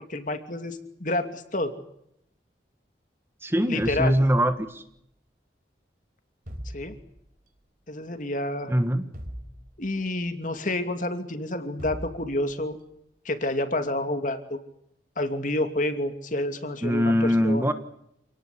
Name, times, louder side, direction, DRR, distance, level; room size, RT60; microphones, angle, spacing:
voice 1, 0.0-1.7 3.7-4.2 6.7-6.9 7.9-8.7 9.8-12.8 13.2-14.6 15.2-17.7, left 1 dB, 45° left, 7 dB, 2.7 m, -29 dB
voice 2, 3.4-4.8 8.7-9.1 16.8-17.7, equal, 15° right, 9 dB, 1.4 m, -22 dB
sound 1, 3.8-4.9 6.5-7.4 9.1-10.2 11.8-12.8, equal, 50° right, 4.3 m, -40 dB
28.0 x 18.5 x 8.5 m, 0.76 s
head